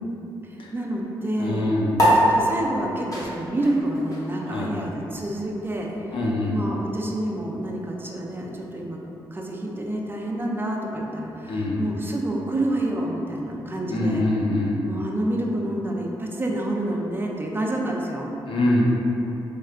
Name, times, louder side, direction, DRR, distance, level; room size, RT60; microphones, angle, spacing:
voice 1, 0.4-1.7 2.2-5.9 6.5-14.2 14.8-18.3, right 1 dB, 25° right, -1 dB, 0.5 m, -28 dB
voice 2, 1.4-2.0 4.4-4.7 6.1-6.6 11.5-11.8 13.9-14.8 18.5-18.8, left 1 dB, 65° left, -3 dB, 0.7 m, -24 dB
sound 1, 1.9-8.8, equal, 40° left, 1.1 m, -27 dB
4.4 x 3.1 x 2.4 m, 3.0 s
supercardioid pair, 60°, 9 cm